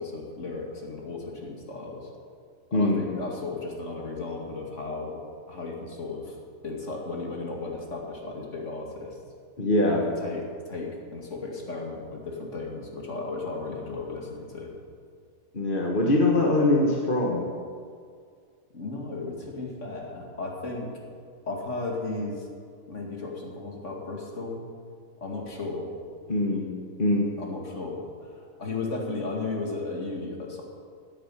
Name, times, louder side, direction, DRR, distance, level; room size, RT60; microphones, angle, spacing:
voice 1, 0.0-2.1 2.7-5.2 5.5-6.4 6.6-9.2 9.9-14.7 18.7-21.0 21.5-22.5 22.9-24.6 25.2-25.9 27.4-30.6, left 3 dB, 50° left, -1 dB, 2.5 m, -35 dB
voice 2, 2.7-3.0 9.6-10.0 15.5-17.5 26.3-26.7 27.0-27.3, left 2 dB, 35° left, -1 dB, 1.5 m, -22 dB
10.0 x 10.0 x 8.9 m, 2.1 s
omnidirectional pair, 1.6 m